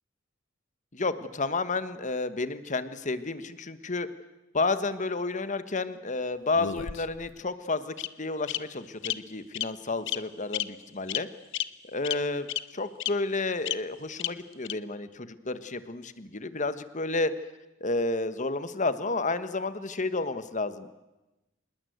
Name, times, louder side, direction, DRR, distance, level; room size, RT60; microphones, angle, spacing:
voice 1, 0.9-4.1 4.5-11.3 11.8-17.3 17.8-20.9, left 3 dB, 35° left, 12 dB, 1.3 m, -31 dB
Bird vocalization bird call bird song, 6.6-7.3 8.0-8.1 8.5-8.6 9.0-9.1 9.5-9.7 10.1-10.2 10.5-10.6 11.1-11.2 11.5-11.6 12.0-12.1 12.5-12.6 13.0-13.1 13.7-13.8 14.2-14.3 14.6-14.7, left 12 dB, 60° left, 0.9 m, -30 dB
26.5 x 21.0 x 8.0 m, 1.0 s
head